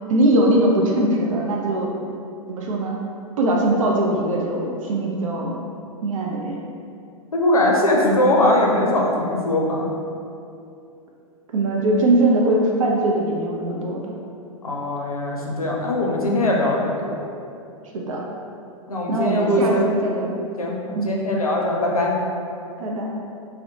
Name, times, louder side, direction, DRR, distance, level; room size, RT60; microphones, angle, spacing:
voice 1, 0.1-1.9 2.5-3.0 3.4-5.6 6.0-6.6 11.5-14.1 17.9-18.2 19.1-20.3 20.9-21.1 22.8-23.1, right 1 dB, 65° right, -1 dB, 0.4 m, -21 dB
voice 2, 7.3-9.9 14.6-17.1 18.9-20.0 20.6-22.2, left 1 dB, 90° left, -2 dB, 0.5 m, -21 dB
2.6 x 2.0 x 2.7 m, 2.5 s
figure-of-eight pair, 105°, 18 cm